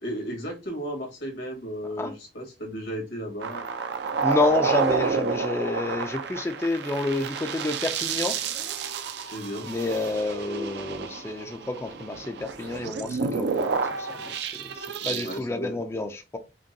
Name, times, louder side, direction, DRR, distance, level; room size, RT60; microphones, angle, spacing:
voice 1, 0.0-3.7 9.2-9.7 15.0-15.8, equal, 85° left, 1.9 m, -34 dB
sound 1, 3.4-15.4, right 5 dB, 65° right, 0.5 m, -30 dB
voice 2, 4.2-8.4 9.6-14.5 14.7-16.4, left 2 dB, 15° left, 0.4 m, -29 dB
5.0 x 2.2 x 2.7 m
head